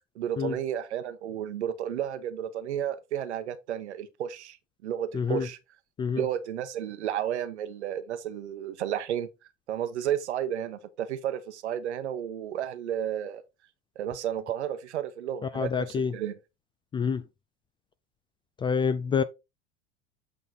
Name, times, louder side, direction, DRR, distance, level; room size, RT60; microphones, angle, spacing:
voice 1, 0.1-4.6 4.8-5.6 6.1-9.3 9.7-13.4 14.0-16.4, right 10 dB, 70° right, 1.0 m, -32 dB
voice 2, 5.1-5.5 6.0-6.2 15.5-16.1 16.9-17.2 18.6-19.2, left 6 dB, 15° left, 0.3 m, -27 dB
8.1 x 3.8 x 4.0 m
figure-of-eight pair, 85°, 35 cm